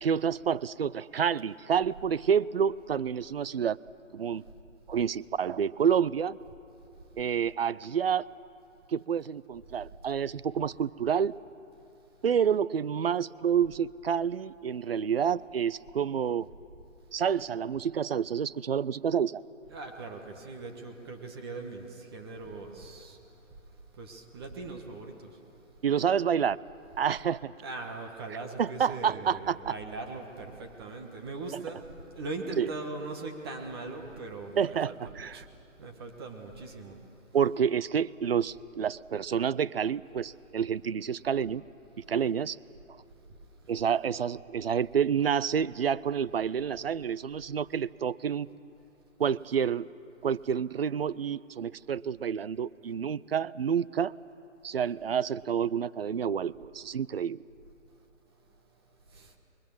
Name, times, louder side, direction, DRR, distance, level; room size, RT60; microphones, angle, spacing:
voice 1, 0.0-3.8 4.1-4.4 4.9-6.4 7.2-8.2 8.9-11.4 12.2-16.5 17.1-19.4 25.8-26.6 27.0-27.5 28.6-29.7 32.6-32.7 34.6-35.4 37.3-41.6 42.1-42.6 42.9-43.0 43.7-48.5 49.2-49.9 50.2-54.1 54.6-57.4, right 7 dB, 50° right, 21 dB, 0.5 m, -28 dB
voice 2, 19.7-23.2 24.0-25.3 27.6-35.4 35.8-37.0 59.1-59.3, right 3 dB, 20° right, 3 dB, 1.4 m, -40 dB
25.5 x 22.5 x 7.2 m, 2.7 s
hypercardioid pair, 160°, 39 cm